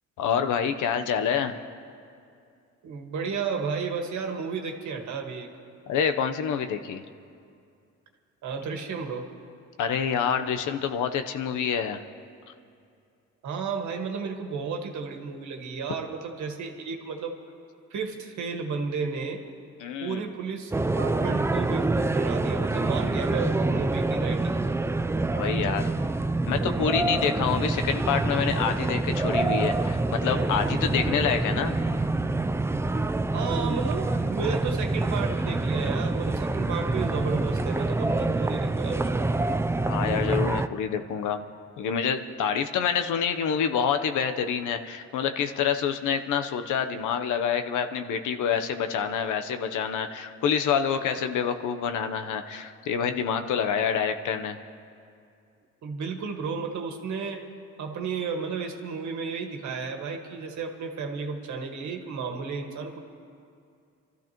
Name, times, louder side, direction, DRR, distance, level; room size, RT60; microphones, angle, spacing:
voice 1, 0.2-1.6 5.9-7.0 9.8-12.0 19.8-20.2 25.3-25.9 26.5-31.8 39.8-41.5 41.8-54.6, left 7 dB, 85° left, 8 dB, 0.9 m, -27 dB
voice 2, 2.8-5.5 8.4-9.3 13.4-17.3 17.9-19.4 20.0-24.7 33.3-39.3 55.8-57.4 57.8-63.0, right 5 dB, 75° right, 3 dB, 1.7 m, -33 dB
sound 1, 20.7-40.7, right 2 dB, 10° right, 0.4 m, -26 dB
27.5 x 13.5 x 3.0 m, 2.4 s
cardioid pair, 90°, 30 cm